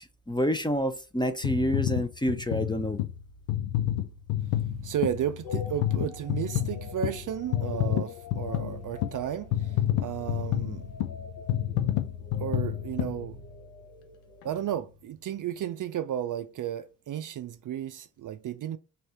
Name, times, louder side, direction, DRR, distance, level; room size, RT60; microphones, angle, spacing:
voice 1, 0.0-3.0, equal, 10° left, 0.5 m, -28 dB
sound 1, 1.4-13.8 14.4-14.5, left 12 dB, 85° left, 0.5 m, -30 dB
voice 2, 4.8-10.9 12.4-13.4 14.4-18.8, right 10 dB, 45° right, 0.4 m, -33 dB
sound 2, 5.4-14.6, left 5 dB, 55° left, 0.9 m, -47 dB
3.3 x 2.7 x 4.2 m
hypercardioid pair, 45°, 44 cm